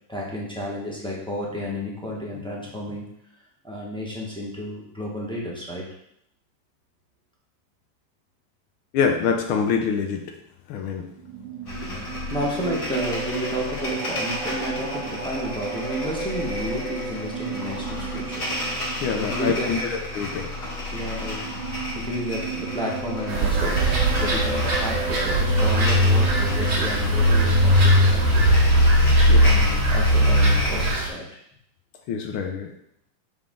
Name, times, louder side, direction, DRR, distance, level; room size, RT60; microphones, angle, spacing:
voice 1, 0.1-3.1 3.6-5.9 12.3-18.4 19.1-19.8 20.9-28.4 29.4-31.2, equal, 5° left, -4 dB, 0.8 m, -31 dB
voice 2, 8.9-10.3 10.7-11.1 19.0-20.5 29.3-29.5 32.1-32.7, left 6 dB, 85° left, 3 dB, 1.5 m, -25 dB
sound 1, 11.2-28.5, right 6 dB, 75° right, 1.3 m, -35 dB
sound 2, 11.7-30.9, left 1 dB, 40° left, 2.0 m, -23 dB
sound 3, 23.3-31.1, right 4 dB, 55° right, 1.5 m, -26 dB
7.0 x 3.6 x 3.7 m, 0.73 s
omnidirectional pair, 2.3 m